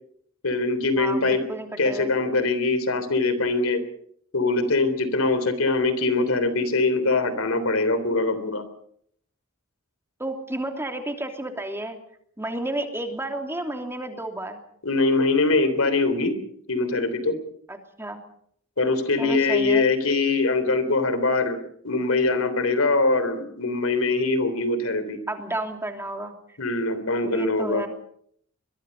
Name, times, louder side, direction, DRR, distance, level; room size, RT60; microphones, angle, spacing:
voice 1, 0.4-1.4 1.8-3.8 4.3-8.6 14.8-16.3 16.7-17.4 18.8-21.6 21.8-25.2 26.6-27.8, left 3 dB, 85° left, 12 dB, 3.4 m, -23 dB
voice 2, 1.0-2.1 10.2-12.0 12.4-14.6 17.7-18.2 19.2-19.8 25.3-26.3 27.2-27.9, right 1 dB, 10° right, 4 dB, 2.9 m, -31 dB
24.5 x 22.0 x 5.4 m, 0.65 s
head